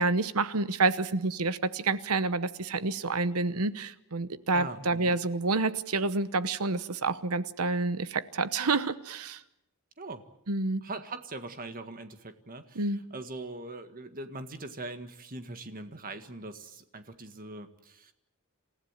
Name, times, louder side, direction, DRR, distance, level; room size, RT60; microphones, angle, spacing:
voice 1, 0.0-9.4 10.5-10.8 12.8-13.0, right 3 dB, 80° right, 1.0 m, -28 dB
voice 2, 4.5-5.2 10.0-10.3 10.8-18.1, right 2 dB, 40° right, 1.7 m, -41 dB
28.0 x 15.5 x 9.0 m
head